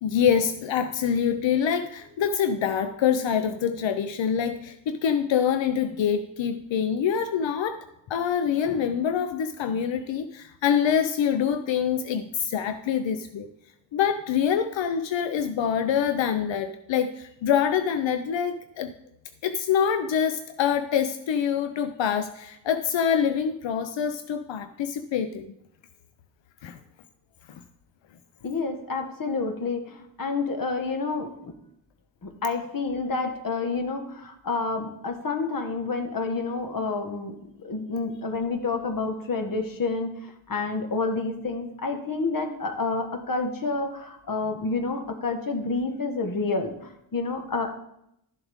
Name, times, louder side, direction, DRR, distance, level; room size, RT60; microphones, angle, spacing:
voice 1, 0.0-7.8 8.1-13.5 13.9-18.9 19.4-25.5 26.6-26.8 27.5-27.6, left 8 dB, 90° left, 10 dB, 0.6 m, -25 dB
voice 2, 28.4-31.5 32.2-47.8, left 3 dB, 50° left, 5 dB, 1.5 m, -29 dB
13.0 x 7.1 x 3.6 m, 0.79 s
wide cardioid pair, 95°, 44 cm